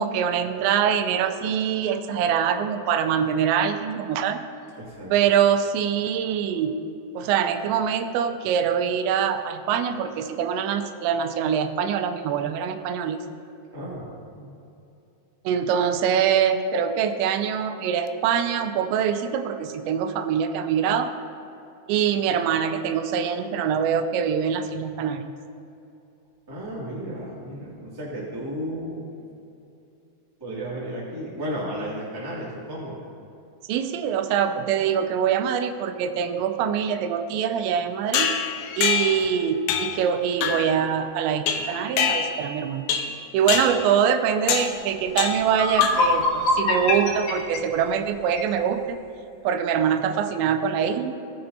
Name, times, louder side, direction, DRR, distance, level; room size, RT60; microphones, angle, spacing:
voice 1, 0.0-4.4 5.1-6.7 7.1-13.2 15.5-21.1 21.9-25.3 33.7-38.4 38.8-42.8 43.3-49.0 49.4-51.1, right 8 dB, 90° right, 8 dB, 2.9 m, -24 dB
voice 2, 4.7-5.1 13.7-14.5 26.5-29.1 30.4-33.0, equal, 15° right, -7 dB, 0.7 m, -33 dB
sound 1, 38.1-39.3 39.7-40.0 40.4-40.8 41.5-42.5 42.9-43.2 43.5-43.8 44.5-44.8 45.2-45.5 45.8-46.2, left 7 dB, 80° left, 2.7 m, -25 dB
sound 2, 45.0-45.1 45.4-48.5, left 3 dB, 60° left, 3.0 m, -24 dB
17.0 x 7.7 x 2.7 m, 2.7 s
omnidirectional pair, 5.1 m